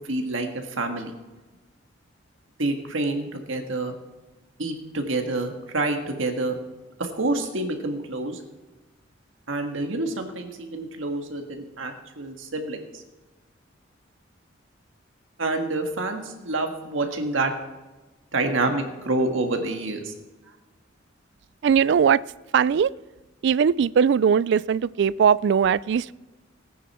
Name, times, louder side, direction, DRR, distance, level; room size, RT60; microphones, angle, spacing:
voice 1, 0.1-0.5 0.8-1.1 2.6-3.9 4.6-6.6 7.0-8.4 9.5-12.8 15.4-17.5 18.3-20.1, right 2 dB, 80° right, 4 dB, 1.8 m, -27 dB
voice 2, 21.6-22.2 22.5-22.9 23.4-26.1, right 7 dB, 60° right, 20 dB, 0.3 m, -20 dB
18.5 x 9.5 x 4.4 m, 1.1 s
head